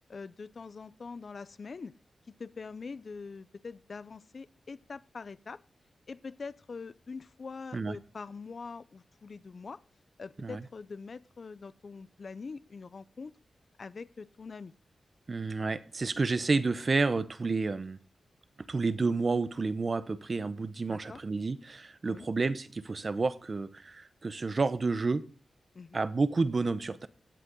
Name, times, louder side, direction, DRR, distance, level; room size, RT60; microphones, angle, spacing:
voice 1, 0.1-1.9 2.4-5.6 6.1-9.8 10.2-13.3 13.8-14.7 20.9-21.2 22.1-22.3 25.7-26.0, left 4 dB, 45° left, 16 dB, 0.5 m, -44 dB
voice 2, 15.3-18.0 18.6-25.2 25.9-27.1, right 3 dB, 35° right, 14 dB, 0.7 m, -30 dB
16.5 x 8.1 x 3.8 m, 0.40 s
wide cardioid pair, 140°, 0 cm